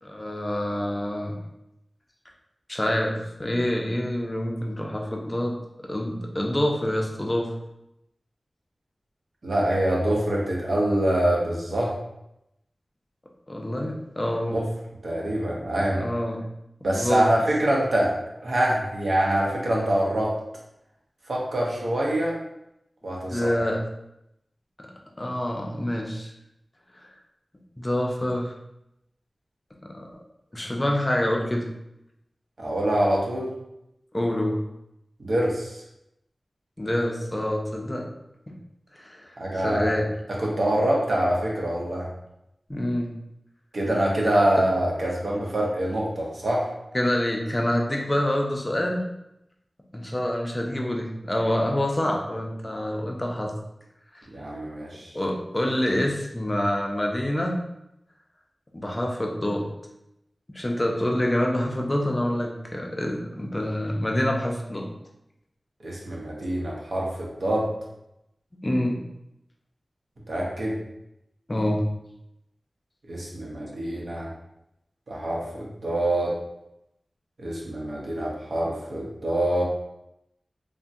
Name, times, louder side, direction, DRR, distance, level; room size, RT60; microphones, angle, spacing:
voice 1, 0.0-1.4 2.7-5.6 5.8-7.5 13.5-14.7 15.9-16.4 16.9-17.3 23.3-23.8 24.8-24.9 25.2-26.3 27.8-28.5 29.8-30.2 30.5-31.7 34.1-34.6 36.8-38.1 38.5-38.6 39.0-39.3 39.6-40.1 42.7-43.1 46.9-49.1 49.9-53.5 54.1-54.3 55.1-57.6 58.7-59.7 60.5-64.9 68.6-69.0 71.5-71.9, left 1 dB, 25° left, 0 dB, 0.5 m, -26 dB
voice 2, 9.4-11.9 14.5-14.6 15.0-16.0 16.8-18.1 18.4-20.3 21.3-22.3 23.0-23.5 32.6-33.5 35.2-35.8 39.4-40.0 40.4-42.1 43.7-46.7 54.3-55.1 65.8-67.7 70.3-70.8 73.0-74.3 75.1-76.4 77.4-79.6, right 1 dB, 70° right, -3 dB, 0.8 m, -25 dB
3.4 x 2.1 x 2.6 m, 0.84 s
wide cardioid pair, 80°, 0 cm